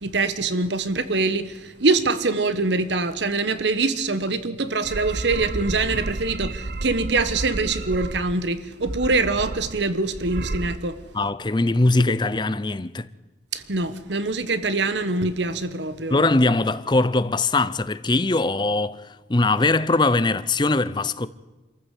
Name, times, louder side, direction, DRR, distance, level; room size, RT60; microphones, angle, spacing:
voice 1, 0.0-11.0 13.5-16.3, right 3 dB, 75° right, 1.2 m, -24 dB
sound 1, 4.8-8.4 8.8-9.8 10.1-10.8, right 2 dB, 55° right, 0.8 m, -31 dB
voice 2, 11.1-13.1 16.1-19.0 19.3-21.3, left 2 dB, 25° left, 0.6 m, -21 dB
26.0 x 14.0 x 8.3 m
head